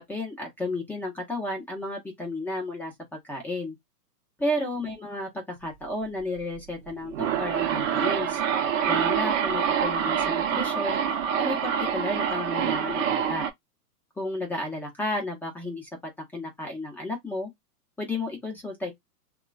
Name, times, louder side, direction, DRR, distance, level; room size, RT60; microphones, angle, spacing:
voice 1, 0.0-3.7 4.4-8.4 8.9-11.0 11.4-13.5 14.2-15.9 16.3-17.5 18.0-18.9, left 1 dB, 5° left, 0.6 m, -32 dB
sound 1, 6.9-13.5, right 8 dB, 50° right, 0.8 m, -26 dB
2.9 x 2.2 x 2.4 m
hypercardioid pair, 120°, 48 cm